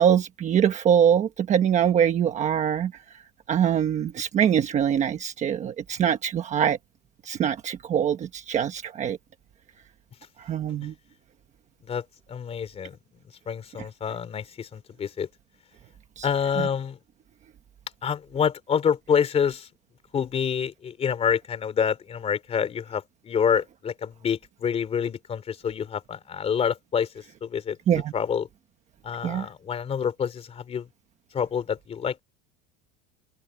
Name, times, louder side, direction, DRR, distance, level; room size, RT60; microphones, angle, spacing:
voice 1, 0.0-2.9 3.5-6.8 7.3-9.2 10.5-10.9 16.2-16.3 27.9-28.1 29.2-29.5, right 9 dB, 20° right, 1.2 m, -23 dB
voice 2, 11.8-13.0 13.5-15.3 16.2-17.0 18.0-19.7 20.1-27.8 28.1-28.5 29.0-30.9 31.3-32.2, left 7 dB, 20° left, 3.5 m, -27 dB
supercardioid pair, 175°, 32 cm